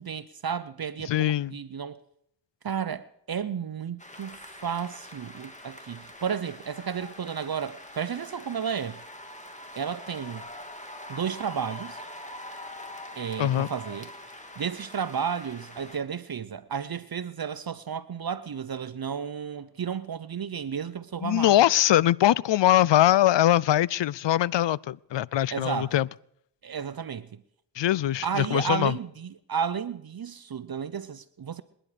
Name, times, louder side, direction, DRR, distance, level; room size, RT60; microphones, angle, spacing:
voice 1, 0.0-2.0 2.6-9.0 9.8-10.4 11.1-12.0 13.2-14.1 14.6-21.7 25.5-26.0 26.6-27.4 28.2-31.6, right 7 dB, 50° right, 0.8 m, -32 dB
voice 2, 1.1-1.5 13.4-13.7 21.2-26.1 27.8-28.9, left 13 dB, 70° left, 0.5 m, -22 dB
sound 1, 4.0-16.0, left 1 dB, 15° left, 2.5 m, -44 dB
26.5 x 10.0 x 5.0 m
cardioid pair, 40°, 46 cm